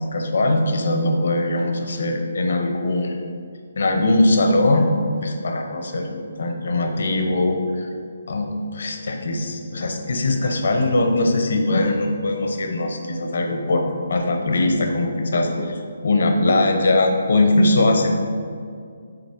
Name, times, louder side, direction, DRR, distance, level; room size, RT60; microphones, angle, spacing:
voice 1, 0.0-3.2 3.8-4.9 5.2-7.9 8.3-18.1, left 2 dB, 65° left, 4 dB, 0.9 m, -21 dB
6.5 x 4.1 x 4.5 m, 2.2 s
hypercardioid pair, 165°, 0 cm